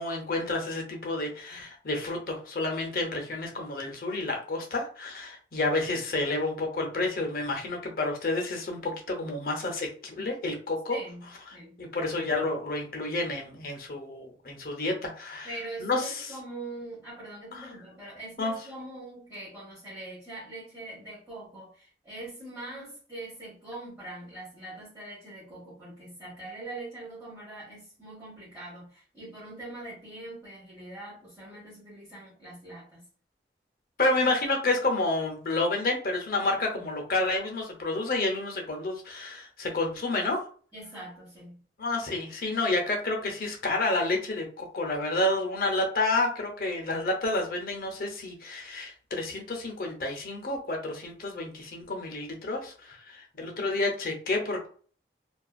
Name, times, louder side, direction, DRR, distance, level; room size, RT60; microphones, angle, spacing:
voice 1, 0.0-11.0 11.8-15.5 15.8-16.3 17.5-17.7 18.4-18.5 34.0-40.4 41.8-54.7, left 2 dB, 55° left, 0.6 m, -30 dB
voice 2, 10.9-11.8 15.4-33.1 40.7-41.6, right 2 dB, 15° right, 1.0 m, -43 dB
2.5 x 2.3 x 2.3 m
head